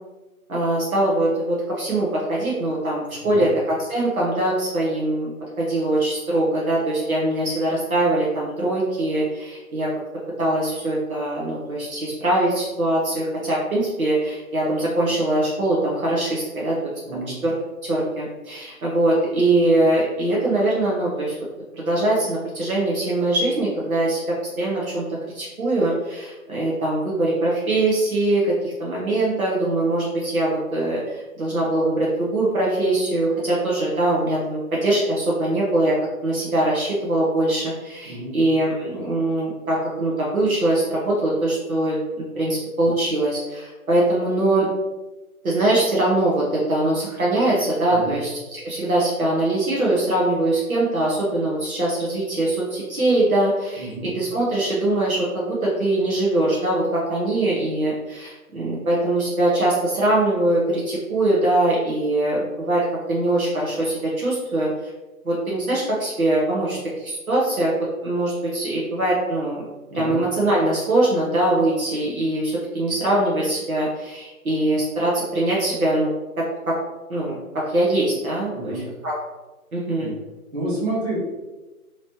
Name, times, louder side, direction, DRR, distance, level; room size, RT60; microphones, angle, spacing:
voice 1, 0.5-5.3 5.6-9.9 10.4-16.8 17.1-17.5 17.8-21.4 21.7-24.2 24.6-25.0 25.3-36.0 36.2-42.0 42.4-44.7 45.4-64.7 65.2-67.7 68.0-69.6 69.9-76.1 76.4-76.8 77.1-79.1 79.7-80.1, right 1 dB, 65° right, -5 dB, 1.0 m, -22 dB
voice 2, 78.5-78.8 80.0-80.2 80.5-81.2, right 2 dB, 45° right, -7 dB, 1.3 m, -29 dB
3.1 x 2.8 x 2.9 m, 1.1 s
hypercardioid pair, 180°, 45 cm